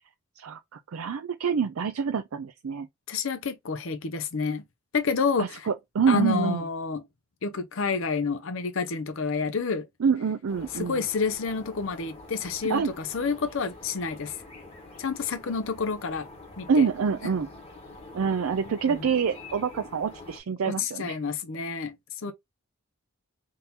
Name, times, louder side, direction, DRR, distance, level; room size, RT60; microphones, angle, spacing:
voice 1, 0.4-2.9 5.4-6.6 10.0-11.0 12.7-12.9 16.7-17.5 18.1-21.2, right 6 dB, 70° right, 0.4 m, -26 dB
voice 2, 3.1-4.6 4.9-5.7 6.1-7.0 7.4-9.9 10.8-14.3 15.0-16.3 16.6-16.8 18.9-19.0 20.6-21.9 22.2-22.3, left 5 dB, 60° left, 0.6 m, -29 dB
sound 1, 10.5-20.4, left 2 dB, 30° left, 1.3 m, -46 dB
3.7 x 2.8 x 3.8 m
head